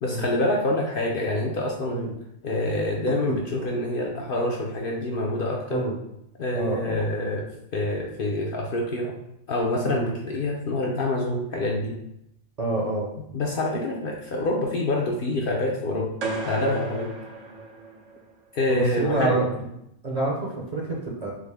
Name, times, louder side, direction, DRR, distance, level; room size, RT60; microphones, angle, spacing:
voice 1, 0.0-2.0 2.4-5.9 6.4-9.2 9.5-12.0 13.3-16.1 16.4-17.1 18.5-19.5, left 1 dB, 60° left, -1 dB, 0.6 m, -26 dB
voice 2, 6.5-7.1 9.8-10.1 12.6-13.1 18.7-19.7 20.0-21.3, right 2 dB, 40° right, -3 dB, 0.7 m, -27 dB
sound 1, 16.2-18.3, right 3 dB, 85° right, 1.1 m, -34 dB
4.8 x 2.1 x 3.3 m, 0.78 s
omnidirectional pair, 1.2 m